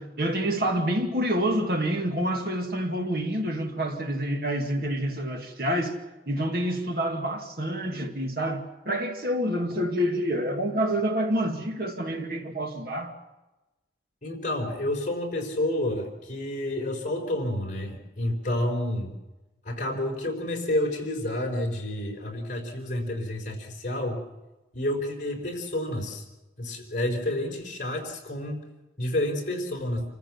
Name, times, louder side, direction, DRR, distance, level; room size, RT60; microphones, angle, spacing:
voice 1, 0.0-13.1, equal, 55° right, 2.3 m, -28 dB
voice 2, 14.2-19.1 19.6-24.2 24.7-26.2 26.6-28.6 29.0-30.0, left 1 dB, 45° left, 4.6 m, -29 dB
27.5 x 15.0 x 7.2 m
head